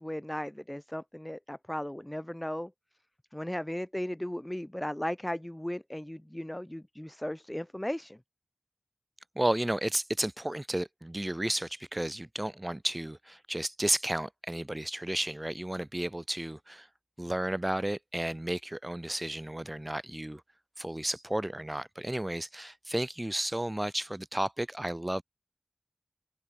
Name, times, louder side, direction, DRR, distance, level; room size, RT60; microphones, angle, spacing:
voice 1, 0.0-2.7 3.3-8.2, left 1 dB, 15° left, 1.4 m, -36 dB
voice 2, 9.4-16.9 17.2-20.4 20.8-25.2, right 1 dB, 30° right, 5.7 m, -33 dB
open air
wide cardioid pair, 50°, 0 cm